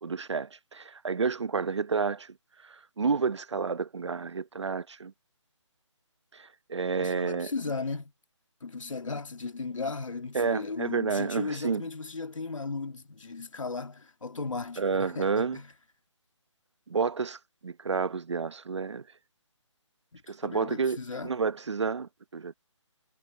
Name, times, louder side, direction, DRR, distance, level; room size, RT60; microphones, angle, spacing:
voice 1, 0.0-2.3 2.6-5.1 6.3-7.5 10.3-11.8 14.8-15.6 16.9-19.0 20.3-21.0 21.2-22.5, right 5 dB, 65° right, 1.0 m, -30 dB
voice 2, 7.0-8.1 8.6-15.7 20.1-21.3, left 4 dB, 90° left, 2.4 m, -36 dB
hypercardioid pair, 170°, 16 cm